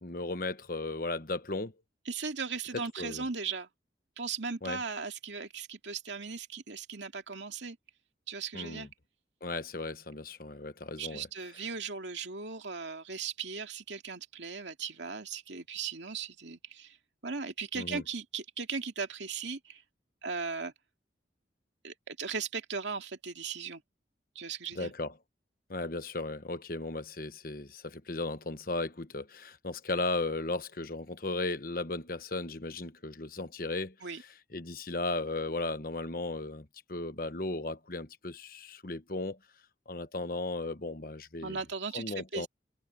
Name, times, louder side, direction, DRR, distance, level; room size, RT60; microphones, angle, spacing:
voice 1, 0.0-1.7 3.0-3.2 4.6-4.8 8.5-8.9 9.4-11.3 17.7-18.0 24.7-25.1 25.7-33.9 34.5-39.4 39.9-41.6 41.9-42.5, left 2 dB, 50° left, 1.2 m, -36 dB
voice 2, 2.1-3.7 4.2-7.8 8.3-8.9 11.0-17.0 17.2-19.8 20.2-20.7 21.8-23.8 24.4-24.9 34.0-34.2 41.4-42.5, right 5 dB, 75° right, 2.3 m, -37 dB
head